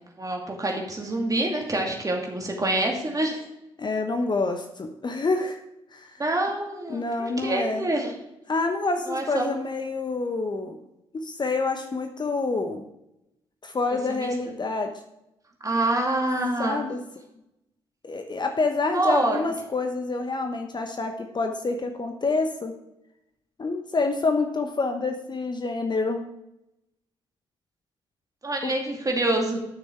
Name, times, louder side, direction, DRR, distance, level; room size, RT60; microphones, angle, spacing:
voice 1, 0.2-3.5 6.2-8.1 9.1-9.5 14.1-14.3 15.6-16.8 18.9-19.4 28.4-29.6, right 1 dB, 25° right, 0 dB, 2.5 m, -26 dB
voice 2, 3.8-5.6 5.9-6.1 6.9-7.9 8.5-10.8 11.1-12.9 13.6-14.9 16.6-17.0 18.0-22.7 23.6-26.2 28.6-28.7, left 3 dB, 30° left, 5 dB, 1.0 m, -27 dB
11.5 x 6.5 x 4.5 m, 0.86 s
figure-of-eight pair, 40°, 15 cm